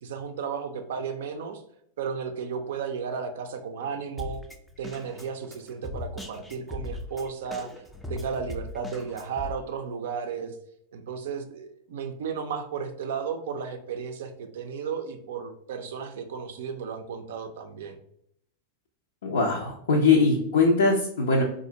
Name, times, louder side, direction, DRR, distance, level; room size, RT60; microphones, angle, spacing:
voice 1, 0.0-1.6 2.0-4.4 4.8-7.7 8.1-10.5 10.9-18.0, right 6 dB, 60° right, 6 dB, 0.4 m, -34 dB
Drum kit, 4.2-9.5, left 1 dB, 5° left, 0.4 m, -39 dB
voice 2, 19.2-21.4, left 3 dB, 65° left, -1 dB, 0.4 m, -21 dB
4.0 x 2.4 x 2.7 m, 0.70 s
figure-of-eight pair, 90°, 0 cm